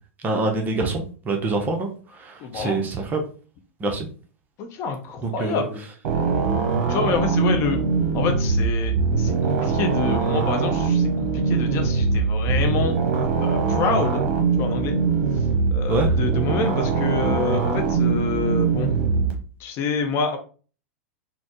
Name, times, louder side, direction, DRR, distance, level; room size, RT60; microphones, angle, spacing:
voice 1, 0.2-1.9 2.2-3.2 3.8-4.1 5.2-5.6 15.9-16.1, right 3 dB, 25° right, 4 dB, 0.6 m, -25 dB
voice 2, 2.4-2.8 4.6-5.9 6.9-7.8 8.1-12.9 13.4-14.2 14.6-15.0 15.7-18.9 19.6-20.4, left 5 dB, 35° left, 6 dB, 0.6 m, -27 dB
sound 1, 6.0-19.3, right 4 dB, 50° right, 0.9 m, -22 dB
4.1 x 2.0 x 2.8 m, 0.38 s
figure-of-eight pair, 95°, 8 cm